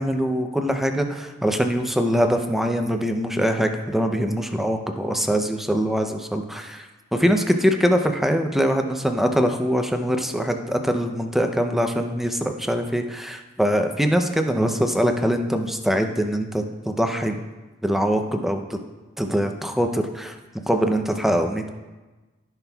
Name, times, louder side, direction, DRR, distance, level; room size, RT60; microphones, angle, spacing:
voice 1, 0.0-17.4 17.8-18.8 19.2-20.3 20.7-21.7, equal, ahead, 5 dB, 0.6 m, -23 dB
14.5 x 5.9 x 2.3 m, 1.2 s
head